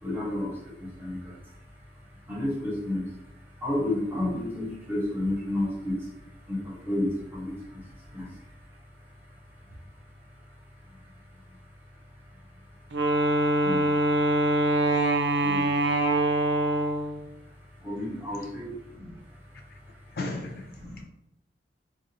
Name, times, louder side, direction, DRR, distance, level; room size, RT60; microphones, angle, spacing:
voice 1, 0.0-1.5 2.2-3.1 3.6-8.5 9.7-9.8 10.9-11.0 13.6-13.8 15.4-15.7 17.8-19.6 20.8-21.0, left 1 dB, 10° right, -5 dB, 1.0 m, -32 dB
Wind instrument woodwind instrument, 12.9-17.2, right 2 dB, 75° right, 0.5 m, -24 dB
voice 2, 20.1-21.0, left 2 dB, 55° left, 4 dB, 0.4 m, -36 dB
4.8 x 2.4 x 2.7 m, 0.88 s
head